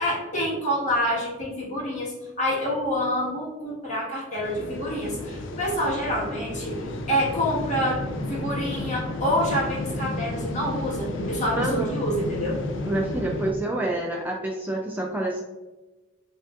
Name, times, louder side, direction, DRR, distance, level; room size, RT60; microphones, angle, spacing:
voice 1, 0.0-6.8 7.1-8.0 8.3-12.6, equal, 40° left, -5 dB, 1.5 m, -27 dB
sound 1, 4.4-13.5, left 1 dB, 75° left, 0.5 m, -32 dB
voice 2, 11.6-12.0 12.8-15.4, right 1 dB, 10° right, 0 dB, 0.3 m, -28 dB
5.5 x 2.7 x 2.4 m, 1.1 s
head